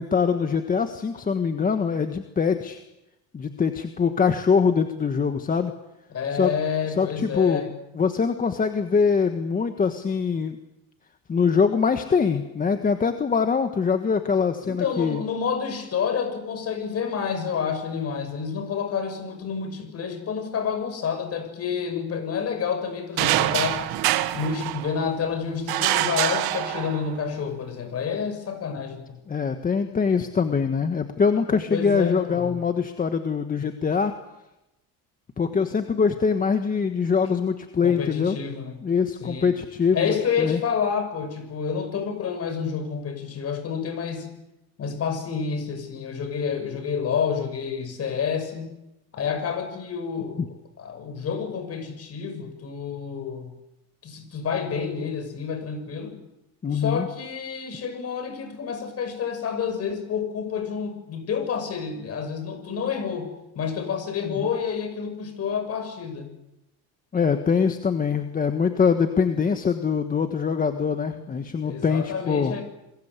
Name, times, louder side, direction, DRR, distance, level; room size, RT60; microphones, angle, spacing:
voice 1, 0.0-2.8 3.3-5.7 6.3-6.5 7.0-7.7 7.9-10.6 11.3-15.2 29.3-34.2 35.4-38.4 38.8-40.6 56.6-57.1 64.3-64.5 67.1-72.5, left 5 dB, 20° left, 7 dB, 1.4 m, -23 dB
voice 2, 6.1-7.7 14.6-23.8 24.3-29.2 31.7-32.6 37.8-38.9 39.2-39.5 39.9-44.3 44.8-48.7 49.1-50.4 50.8-53.5 54.0-56.2 56.7-63.3 63.5-66.3 71.1-71.3 71.6-72.6, left 6 dB, 40° left, 8 dB, 6.5 m, -29 dB
sound 1, 23.2-25.2 25.7-27.2, right 15 dB, 75° right, 1.7 m, -25 dB
27.5 x 22.0 x 8.3 m, 0.92 s
cardioid pair, 150°, 38 cm